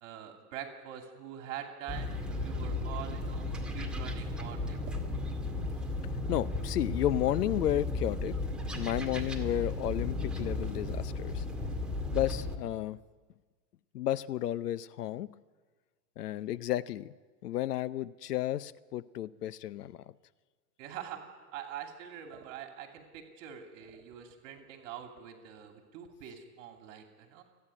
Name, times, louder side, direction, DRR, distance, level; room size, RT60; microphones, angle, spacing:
voice 1, 0.0-5.0 11.7-11.8 20.8-21.2 21.5-27.4, right 9 dB, 55° right, 2.8 m, -44 dB
sound 1, 1.9-12.6, left 2 dB, ahead, 2.2 m, -35 dB
voice 2, 6.3-8.3 8.7-11.4 12.1-13.0 13.9-15.3 16.2-17.1 17.4-20.0, left 12 dB, 85° left, 0.8 m, -32 dB
28.5 x 9.7 x 9.6 m
hypercardioid pair, 130°, 45 cm